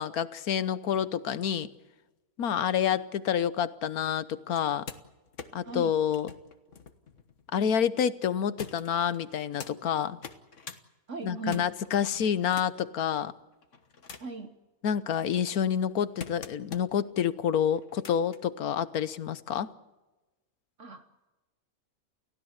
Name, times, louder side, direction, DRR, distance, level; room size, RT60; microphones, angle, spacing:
voice 1, 0.0-1.7 2.4-4.9 5.5-6.3 7.5-10.2 11.2-13.3 14.8-19.7, left 8 dB, 85° left, 1.4 m, -28 dB
sound 1, 4.5-7.8 8.6-9.7 10.1-10.8 11.2-12.9 13.5-14.4 15.0-17.0 17.8-18.4 19.5-19.6, left 6 dB, 55° left, 1.7 m, -46 dB
voice 2, 11.1-11.6 14.2-14.5 20.8-21.0, right 3 dB, 60° right, 1.5 m, -37 dB
29.5 x 16.0 x 8.0 m
omnidirectional pair, 1.5 m